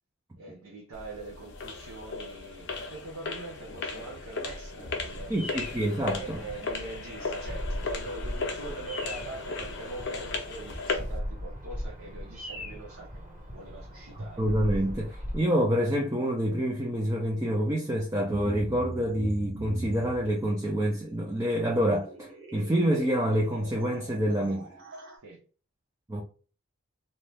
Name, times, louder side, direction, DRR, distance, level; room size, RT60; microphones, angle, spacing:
voice 1, 0.3-5.3 6.2-13.2 13.5-14.4 25.2-25.4, right 3 dB, 85° right, 0.8 m, -43 dB
sound 1, 0.9-11.2, left 4 dB, 55° left, 0.6 m, -36 dB
Bird vocalization bird call bird song, 4.9-15.4, equal, 40° right, 1.5 m, -39 dB
voice 2, 5.3-6.4 14.4-24.7 26.1-26.2, equal, 15° right, 0.4 m, -27 dB
sound 2, 18.3-25.2, right 2 dB, 60° right, 0.8 m, -41 dB
2.7 x 2.2 x 3.2 m
head